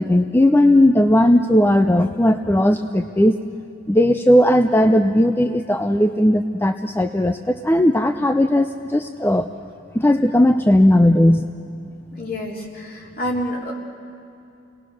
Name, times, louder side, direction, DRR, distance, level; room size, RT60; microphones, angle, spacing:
voice 1, 0.0-3.4 3.9-9.5 9.9-11.5, left 1 dB, 10° left, 8 dB, 0.4 m, -16 dB
voice 2, 12.1-13.7, equal, 50° left, -2 dB, 3.6 m, -28 dB
28.5 x 19.5 x 6.3 m, 2.7 s
head